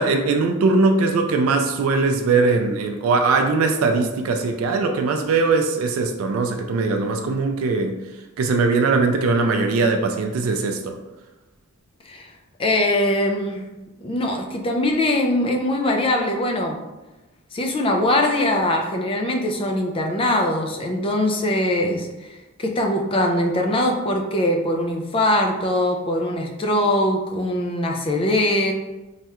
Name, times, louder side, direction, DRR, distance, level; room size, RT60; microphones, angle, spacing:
voice 1, 0.0-8.0 8.4-11.0, right 3 dB, 80° right, 5 dB, 0.3 m, -20 dB
voice 2, 12.6-13.6 14.0-16.8 17.5-28.7, left 1 dB, 25° left, 2 dB, 0.3 m, -22 dB
3.2 x 2.3 x 2.8 m, 1.1 s
head